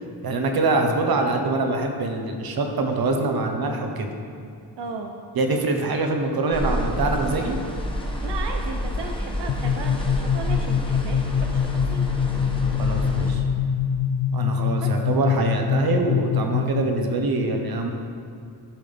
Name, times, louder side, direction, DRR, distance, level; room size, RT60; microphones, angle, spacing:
voice 1, 0.2-4.1 5.3-7.6 12.8-13.4 14.3-17.9, right 2 dB, 60° right, 3 dB, 1.1 m, -24 dB
voice 2, 4.8-5.1 8.2-12.0 14.7-14.9, right 4 dB, 85° right, 2 dB, 0.7 m, -35 dB
sound 1, 6.5-13.3, equal, 10° left, 1.0 m, -29 dB
sound 2, 9.5-17.0, left 8 dB, 75° left, 0.6 m, -24 dB
13.5 x 5.6 x 3.5 m, 2.3 s
wide cardioid pair, 130°, 41 cm